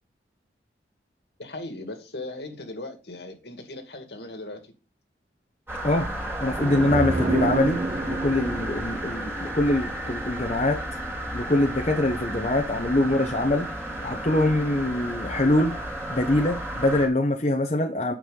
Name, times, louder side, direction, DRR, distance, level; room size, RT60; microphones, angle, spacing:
voice 1, 1.4-4.7, left 2 dB, 75° left, 2.1 m, -38 dB
sound 1, 5.7-17.1, right 1 dB, 10° right, 3.0 m, -33 dB
voice 2, 6.4-7.8 8.1-10.8 11.3-13.7 14.0-15.7 16.1-18.1, left 1 dB, 40° left, 1.1 m, -24 dB
sound 2, 6.5-10.2, right 2 dB, 35° right, 1.0 m, -29 dB
9.3 x 6.5 x 3.9 m
head